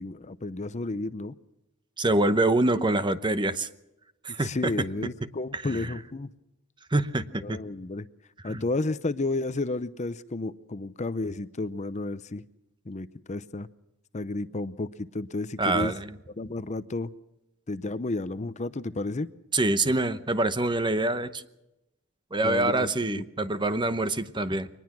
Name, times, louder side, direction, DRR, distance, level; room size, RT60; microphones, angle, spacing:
voice 1, 0.0-1.3 4.4-6.3 7.4-8.1 8.4-12.4 12.9-13.7 14.1-15.9 16.4-17.1 17.7-19.3 22.4-23.2, left 2 dB, 35° left, 14 dB, 0.7 m, -32 dB
voice 2, 2.0-3.7 4.2-4.7 5.5-5.9 6.9-7.6 8.4-8.6 15.6-16.2 19.5-21.4 22.3-24.7, right 2 dB, 20° right, 12 dB, 0.9 m, -25 dB
23.5 x 20.0 x 6.1 m, 0.92 s
head